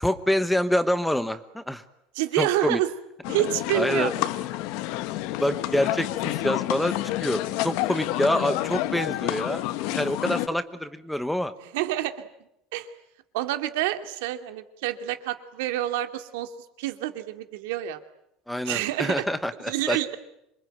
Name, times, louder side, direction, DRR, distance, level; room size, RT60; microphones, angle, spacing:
voice 1, 0.0-1.8 2.4-2.8 3.7-4.1 5.4-7.0 7.2-9.6 9.9-11.5 18.5-20.0, left 1 dB, ahead, 12 dB, 1.1 m, -26 dB
voice 2, 2.1-2.9 3.3-4.3 10.2-10.3 11.7-12.3 12.7-12.9 13.3-16.5 16.8-18.0 18.6-19.3 19.7-20.2, right 14 dB, 90° right, 7 dB, 2.5 m, -28 dB
sound 1, 3.2-10.5, left 15 dB, 60° left, 1.3 m, -29 dB
27.0 x 24.0 x 9.2 m, 0.83 s
cardioid pair, 175°, 0 cm